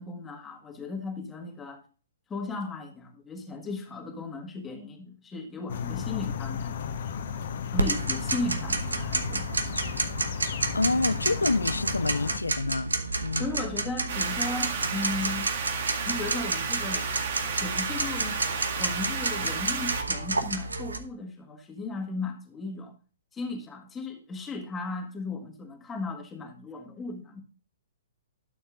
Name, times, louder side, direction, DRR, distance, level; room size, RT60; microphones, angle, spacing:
voice 1, 0.0-1.8 2.3-6.8 7.7-9.5 13.4-15.5 16.1-17.1 17.5-18.4 18.8-22.9 23.3-27.4, left 3 dB, 15° left, 1.6 m, -36 dB
sound 1, 5.7-12.4, left 7 dB, 55° left, 1.0 m, -34 dB
Tick-tock, 7.8-21.0, right 2 dB, 80° right, 1.0 m, -30 dB
voice 2, 10.7-13.0 13.2-13.5, left 3 dB, 85° left, 0.4 m, -27 dB
sound 2, 14.1-20.0, right 5 dB, 55° right, 1.7 m, -32 dB
12.0 x 7.1 x 2.4 m
figure-of-eight pair, 120°, 0 cm